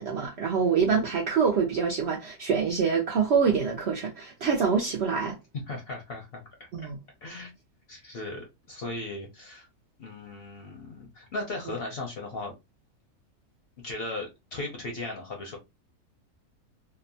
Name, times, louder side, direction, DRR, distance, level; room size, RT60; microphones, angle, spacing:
voice 1, 0.0-5.4 6.7-7.0, right 6 dB, 65° right, 0.6 m, -25 dB
voice 2, 5.7-6.9 7.2-7.5 7.9-9.7 10.0-12.5 13.8-15.6, left 2 dB, 55° left, 0.7 m, -37 dB
2.8 x 2.1 x 2.6 m
omnidirectional pair, 1.6 m